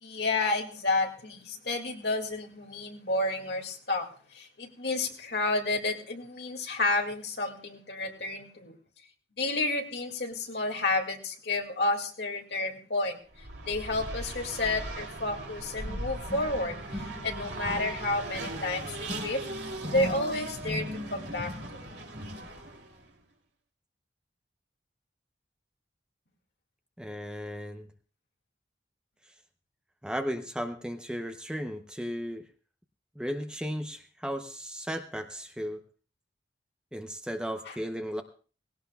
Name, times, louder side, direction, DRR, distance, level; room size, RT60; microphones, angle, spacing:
voice 1, 0.0-8.7 9.4-13.2 13.6-19.4 19.9-21.8 37.7-37.8, left 2 dB, 65° left, 2 dB, 2.2 m, -31 dB
Race car auto racing, 13.3-23.0, right 1 dB, 70° right, 2.9 m, -37 dB
voice 2, 27.0-27.9 30.0-32.5 33.2-35.8 36.9-38.2, equal, 5° right, 6 dB, 0.7 m, -35 dB
19.0 x 17.0 x 2.3 m, 0.39 s
head